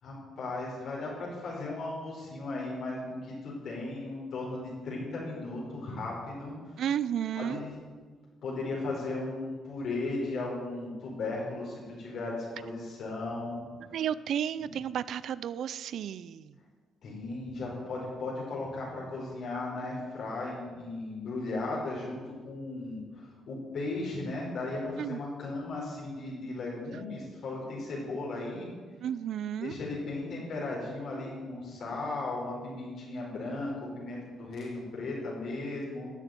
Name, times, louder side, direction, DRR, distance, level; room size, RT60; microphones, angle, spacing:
voice 1, 0.0-6.8 7.4-7.8 8.4-13.6 14.6-14.7 17.0-22.2 22.4-28.7 29.6-36.1, left 2 dB, 65° left, -4 dB, 4.7 m, -36 dB
voice 2, 6.8-7.6 13.9-16.5 25.0-25.2 29.0-29.7, right 9 dB, 70° right, 17 dB, 0.4 m, -32 dB
13.0 x 7.0 x 9.1 m, 1.5 s
cardioid pair, 95°, 0 cm